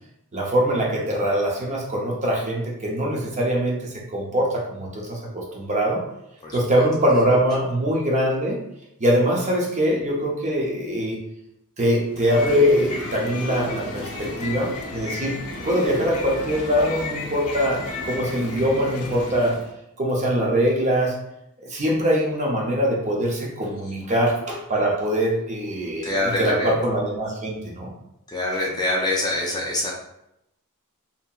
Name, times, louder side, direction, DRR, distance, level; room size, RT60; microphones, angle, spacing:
voice 1, 0.3-6.0 6.5-8.6 9.0-11.2 11.8-15.4 15.6-19.6 20.0-21.1 21.7-27.9, equal, 30° right, -2 dB, 0.6 m, -23 dB
voice 2, 6.4-6.8 26.0-26.7 28.3-29.9, left 1 dB, 15° left, -2 dB, 0.4 m, -25 dB
sound 1, 12.1-19.7, left 2 dB, 80° left, 0.5 m, -33 dB
2.7 x 2.7 x 2.3 m, 0.82 s
head